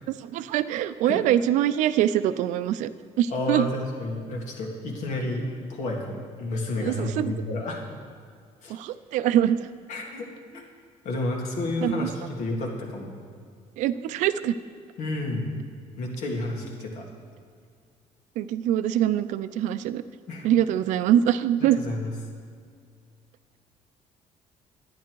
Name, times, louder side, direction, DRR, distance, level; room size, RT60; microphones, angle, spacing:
voice 1, 0.2-2.9 3.2-3.7 6.8-7.3 8.7-9.7 11.8-12.1 13.8-14.5 18.4-20.0 20.4-21.8, right 11 dB, 80° right, 13 dB, 0.5 m, -24 dB
voice 2, 3.3-7.8 8.6-8.8 9.9-10.6 11.0-13.1 15.0-15.5 16.0-17.1 20.3-20.5 21.8-22.1, left 2 dB, 75° left, 0 dB, 2.0 m, -30 dB
11.0 x 10.0 x 4.6 m, 2.2 s
cardioid pair, 155°, 13 cm